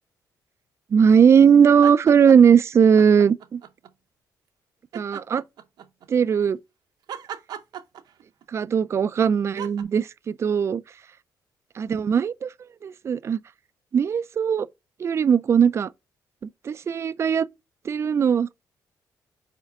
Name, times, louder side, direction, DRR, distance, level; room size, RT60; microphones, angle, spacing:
voice 1, 0.9-3.6 4.9-5.4 6.1-6.6 8.5-10.8 11.8-12.5 12.8-13.4 13.9-14.7 15.0-15.9 16.4-17.5 17.8-18.5, right 7 dB, 40° right, 0.3 m, -19 dB
sound 1, 1.7-2.6 2.9-3.9 4.9-6.1 7.1-8.5 9.6-9.8, right 9 dB, 70° right, 0.7 m, -38 dB
4.8 x 4.4 x 5.1 m
cardioid pair, 100°, 7 cm